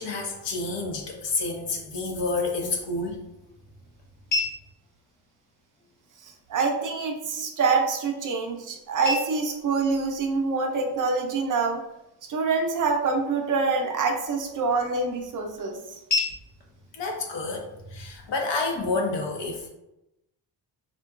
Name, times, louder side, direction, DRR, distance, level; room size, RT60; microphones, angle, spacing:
voice 1, 0.0-3.2 16.9-19.7, left 3 dB, 70° left, 1 dB, 0.7 m, -29 dB
sound 1, 2.5-18.5, left 3 dB, 25° left, 0.5 m, -38 dB
voice 2, 6.5-11.8 12.3-15.8, right 4 dB, 45° right, 2 dB, 0.4 m, -25 dB
3.7 x 2.2 x 2.3 m, 0.89 s
wide cardioid pair, 160°, 44 cm